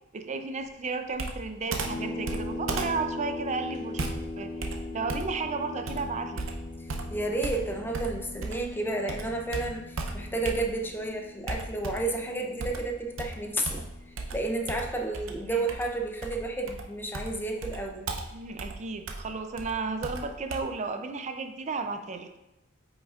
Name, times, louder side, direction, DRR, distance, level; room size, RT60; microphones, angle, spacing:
voice 1, 0.1-4.5 4.9-6.4 15.5-15.7 18.3-22.4, right 4 dB, 35° right, 8 dB, 0.5 m, -33 dB
Computer keyboard, 1.2-8.8 9.1-11.0 11.5-12.2 12.6-20.6, right 3 dB, 70° right, 0.7 m, -36 dB
sound 1, 1.8-14.9, left 2 dB, 70° left, 1.6 m, -40 dB
voice 2, 6.8-13.9 14.3-18.1, right 2 dB, 10° left, 2 dB, 0.6 m, -31 dB
8.2 x 5.2 x 2.5 m, 0.94 s
head